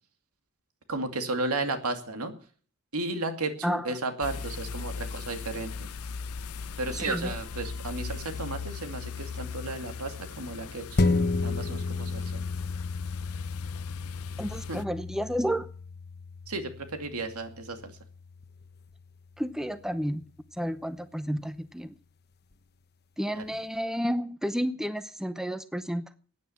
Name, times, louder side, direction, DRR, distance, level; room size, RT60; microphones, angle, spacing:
voice 1, 0.9-2.3 2.9-5.9 6.8-11.2 11.4-12.4 14.7-14.8 16.5-17.9 23.3-23.5, right 2 dB, 90° right, 6 dB, 2.4 m, -34 dB
sound 1, 4.2-14.8, left 5 dB, 80° left, 0.6 m, -39 dB
voice 2, 7.0-7.3 14.4-15.7 19.4-20.2 20.6-21.9 23.2-26.0, equal, ahead, 12 dB, 0.7 m, -31 dB
sound 2, 11.0-19.8 20.2-20.3, left 3 dB, 45° left, 1.0 m, -32 dB
15.0 x 9.6 x 7.2 m, 0.43 s
head